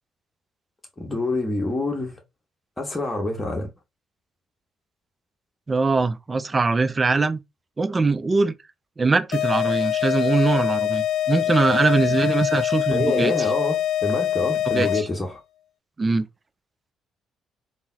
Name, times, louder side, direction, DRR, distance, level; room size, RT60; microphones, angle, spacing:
voice 1, 1.0-2.2 2.8-3.7 12.9-15.4, left 2 dB, 20° left, 1.0 m, -26 dB
voice 2, 5.7-7.4 7.8-8.5 9.0-13.3 14.7-15.1 16.0-16.3, right 3 dB, 30° right, 0.4 m, -22 dB
sound 1, 9.3-15.3, left 11 dB, 60° left, 0.5 m, -24 dB
3.7 x 2.0 x 2.5 m
hypercardioid pair, 45°, 0 cm